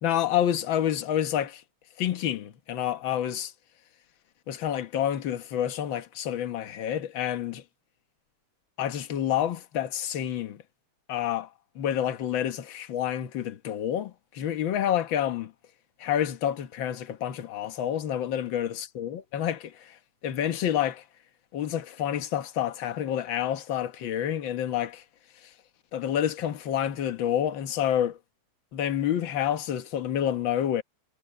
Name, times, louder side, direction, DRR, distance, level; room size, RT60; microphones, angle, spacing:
voice 1, 0.0-1.6 2.0-3.5 4.5-7.6 8.8-10.6 11.1-11.5 11.7-15.5 16.0-21.0 21.5-25.0 25.4-25.5 25.9-28.2 28.7-30.8, left 10 dB, 55° left, 1.4 m, -28 dB
omnidirectional pair, 3.4 m